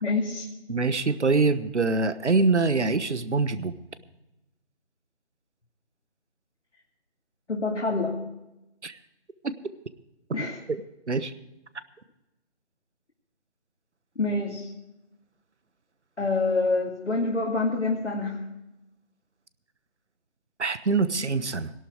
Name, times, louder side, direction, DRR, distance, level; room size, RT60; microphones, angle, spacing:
voice 1, 0.0-0.5 7.5-8.2 10.3-10.6 14.2-14.7 16.2-18.4, left 3 dB, 85° left, -2 dB, 2.5 m, -26 dB
voice 2, 0.7-3.7 8.8-9.0 9.4-9.6 10.7-10.8 11.1-11.3 20.6-21.7, right 3 dB, 85° right, 14 dB, 1.2 m, -24 dB
17.5 x 12.0 x 4.7 m, 0.93 s
figure-of-eight pair, 165°, 34 cm